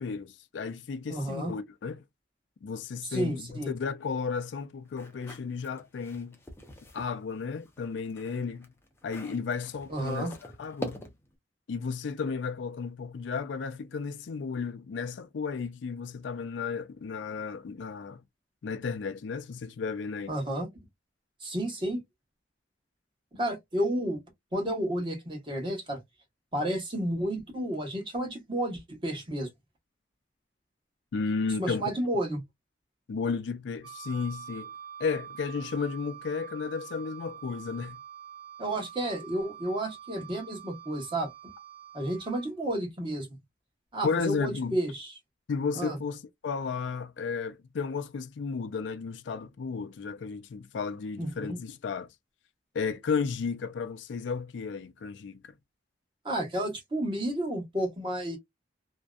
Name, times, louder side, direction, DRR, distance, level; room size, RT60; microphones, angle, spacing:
voice 1, 0.0-2.0 2.6-6.4 6.9-8.7 9.0-11.0 11.7-18.2 18.6-20.3 31.1-31.8 33.1-34.7 35.0-38.0 44.0-44.8 45.5-52.1 52.7-55.4, left 5 dB, 75° left, 0.4 m, -33 dB
voice 2, 1.1-1.5 3.1-3.7 9.9-10.3 20.3-20.7 21.4-22.0 23.3-24.2 24.5-26.0 26.5-29.5 31.6-32.4 38.6-41.3 41.9-43.4 43.9-45.1 45.7-46.0 51.2-51.6 56.2-58.4, right 1 dB, 25° right, 0.9 m, -31 dB
sound 1, 4.9-7.1 7.6-11.4, equal, 15° left, 0.5 m, -44 dB
Wind instrument woodwind instrument, 33.8-42.5, right 9 dB, 55° right, 1.0 m, -46 dB
2.6 x 2.1 x 2.2 m
head